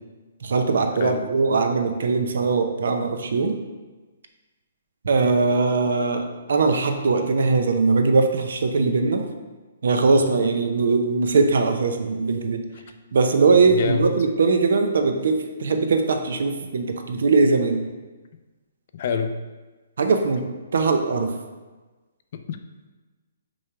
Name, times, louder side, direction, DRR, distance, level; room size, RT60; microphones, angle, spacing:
voice 1, 0.4-3.6 5.0-9.3 9.8-12.6 13.1-17.8 20.0-20.5 20.7-21.3, right 4 dB, 65° right, 6 dB, 0.7 m, -21 dB
voice 2, 13.7-14.1 18.9-19.4 22.3-22.6, left 6 dB, 40° left, 8 dB, 0.4 m, -26 dB
6.2 x 3.3 x 4.8 m, 1.2 s
hypercardioid pair, 170°, 0 cm